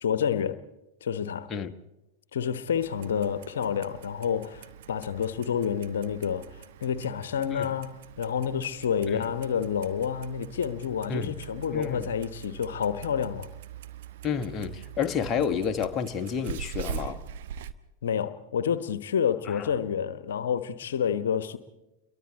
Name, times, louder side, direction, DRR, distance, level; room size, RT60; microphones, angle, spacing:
voice 1, 0.0-0.6 1.0-1.5 2.3-13.5 18.0-21.6, left 8 dB, 60° left, 1.1 m, -29 dB
Clock, 2.7-17.7, right 9 dB, 55° right, 1.1 m, -43 dB
voice 2, 11.7-12.1 14.2-17.2 19.5-19.7, left 7 dB, 25° left, 1.3 m, -30 dB
29.0 x 23.5 x 4.1 m
figure-of-eight pair, 90°, 0 cm